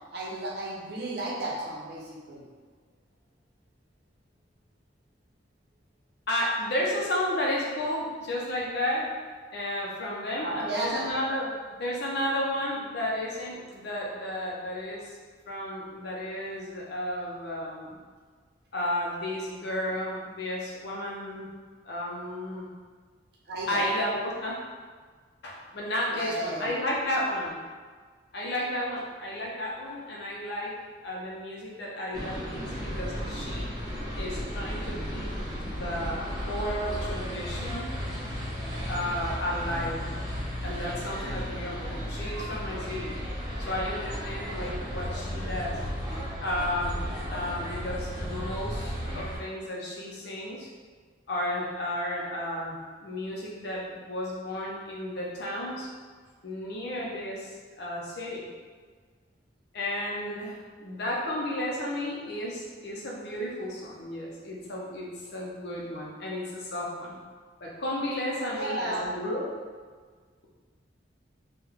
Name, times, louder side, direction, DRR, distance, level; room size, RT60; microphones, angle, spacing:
voice 1, 0.1-2.4 10.4-11.1 23.5-23.8 26.1-26.7 68.5-69.1, right 1 dB, 60° right, -3 dB, 0.7 m, -33 dB
voice 2, 6.3-9.1 9.5-11.5 11.8-15.1 15.5-18.0 18.7-21.4 21.8-22.7 23.7-24.6 25.4-27.6 28.3-30.7 31.0-33.7 34.2-35.3 35.6-37.9 38.9-40.2 40.6-43.1 43.6-45.7 46.4-50.7 51.3-55.9 56.4-58.5 59.7-67.2 67.6-69.5, left 1 dB, 60° left, -4 dB, 0.6 m, -33 dB
sound 1, 32.1-49.4, equal, 20° right, 0.9 m, -34 dB
3.6 x 2.2 x 3.3 m, 1.5 s
head